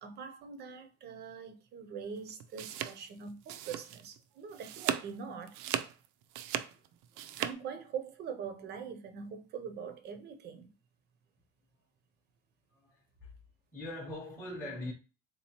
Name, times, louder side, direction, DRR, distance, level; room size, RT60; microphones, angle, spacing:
voice 1, 0.0-5.6 7.4-10.7, right 6 dB, 35° right, 0.5 m, -43 dB
sound 1, 2.3-4.2 4.5-5.1 5.5-7.5, right 11 dB, 90° right, 0.5 m, -37 dB
voice 2, 6.6-7.4 12.7-13.3 13.7-14.9, left 1 dB, 10° left, 0.6 m, -43 dB
3.8 x 2.9 x 2.8 m
cardioid pair, 180°, 30 cm